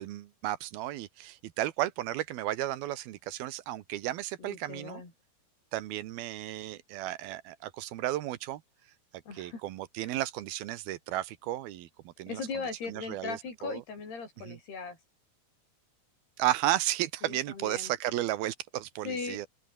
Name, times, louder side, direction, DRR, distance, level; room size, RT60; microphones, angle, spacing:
voice 1, 0.0-5.0 5.7-8.6 9.3-12.4 12.9-13.8 14.4-14.6 16.4-19.5, right 14 dB, 75° right, 2.9 m, -33 dB
voice 2, 4.4-5.1 9.3-9.6 10.1-10.2 12.3-15.0 17.2-17.9 19.1-19.4, left 4 dB, 80° left, 9.2 m, -38 dB
open air
omnidirectional pair, 4.5 m